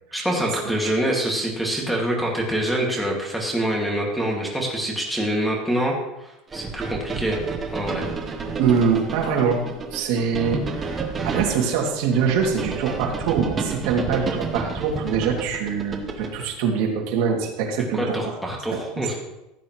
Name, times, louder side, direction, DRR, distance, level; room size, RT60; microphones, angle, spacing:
voice 1, 0.1-5.9 6.5-7.4 7.7-8.1 17.9-19.1, right 1 dB, ahead, -1 dB, 2.1 m, -25 dB
sound 1, 6.5-16.5, right 4 dB, 20° right, 1.0 m, -30 dB
voice 2, 8.6-9.6 9.9-18.2 18.7-18.8, right 6 dB, 60° right, 0 dB, 2.4 m, -23 dB
16.0 x 8.4 x 3.1 m, 0.94 s
cardioid pair, 170°, 0 cm